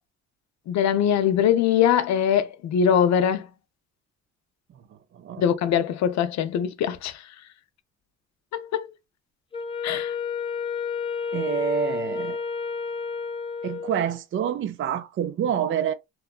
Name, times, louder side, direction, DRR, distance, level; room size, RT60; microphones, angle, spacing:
voice 1, 0.7-3.5 5.4-7.2 8.5-8.9 9.8-10.1, left 8 dB, 65° left, 0.5 m, -22 dB
Wind instrument woodwind instrument, 9.5-14.2, left 5 dB, 20° left, 0.7 m, -30 dB
voice 2, 11.3-12.4 13.6-15.9, right 8 dB, 45° right, 0.4 m, -27 dB
2.8 x 2.3 x 2.3 m
cardioid pair, 75°, 29 cm